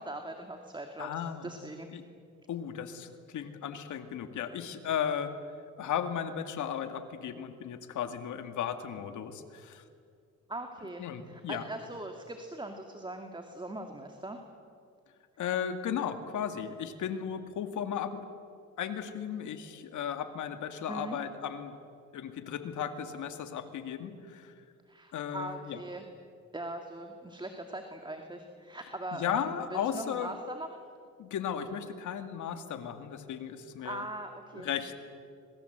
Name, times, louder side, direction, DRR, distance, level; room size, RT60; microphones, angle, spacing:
voice 1, 0.0-1.1 1.4-1.9 10.5-14.4 20.9-21.2 24.9-26.0 26.5-29.4 29.7-30.7 33.8-34.7, right 2 dB, 15° right, 4 dB, 2.4 m, -41 dB
voice 2, 1.0-1.5 1.9-2.0 2.5-5.3 5.8-9.8 11.0-11.7 15.4-18.2 18.8-21.7 22.1-24.5 25.1-25.8 29.1-30.3 31.2-34.0 34.6-34.9, left 8 dB, 75° left, 8 dB, 2.3 m, -35 dB
26.5 x 22.0 x 8.1 m, 2.3 s
cardioid pair, 90°, 30 cm